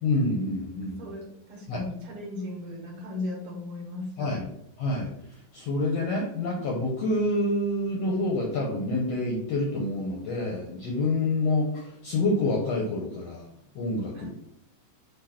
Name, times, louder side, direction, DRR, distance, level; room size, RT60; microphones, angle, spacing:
voice 1, 0.0-1.0 1.7-1.8 4.2-4.5 4.8-5.1 5.5-13.5 13.8-14.3, left 2 dB, 65° left, -1 dB, 1.7 m, -27 dB
voice 2, 1.0-4.4 14.1-14.3, left 2 dB, 50° right, -5 dB, 2.2 m, -36 dB
6.4 x 3.1 x 5.7 m, 0.74 s
omnidirectional pair, 3.8 m